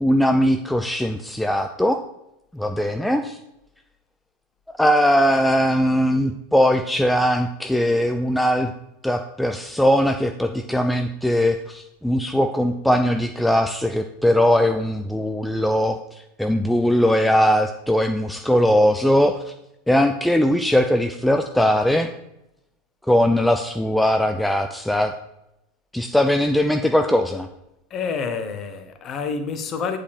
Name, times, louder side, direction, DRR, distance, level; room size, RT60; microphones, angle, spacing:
voice 1, 0.0-2.0 2.5-3.4 4.8-8.7 9.0-19.5 19.9-22.1 23.1-25.1 25.9-27.5, equal, 5° left, 6 dB, 0.4 m, -20 dB
voice 2, 27.9-30.0, left 5 dB, 30° left, 8 dB, 0.9 m, -28 dB
8.2 x 5.0 x 4.3 m, 0.87 s
figure-of-eight pair, 85°, 0 cm